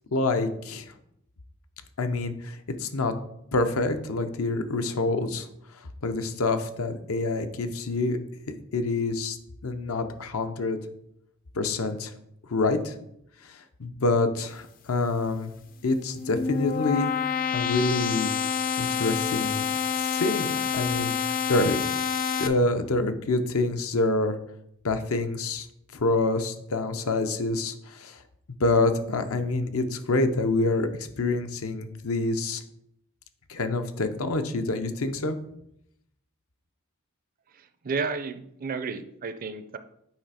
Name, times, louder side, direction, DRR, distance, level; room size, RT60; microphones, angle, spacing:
voice 1, 0.1-0.9 2.0-3.1 3.5-5.5 6.0-8.2 8.7-9.4 9.6-10.8 11.5-12.1 12.5-12.9 13.5-15.5 15.8-17.1 17.5-18.3 18.8-19.6 20.0-21.8 22.4-24.3 24.8-25.7 25.9-28.2 28.6-32.6 33.5-35.4, left 2 dB, 80° left, 8 dB, 0.7 m, -27 dB
sound 1, 16.0-22.5, left 7 dB, 40° left, 0.5 m, -28 dB
voice 2, 37.6-39.8, right 4 dB, 40° right, 11 dB, 0.4 m, -32 dB
8.4 x 3.3 x 4.8 m, 0.76 s
head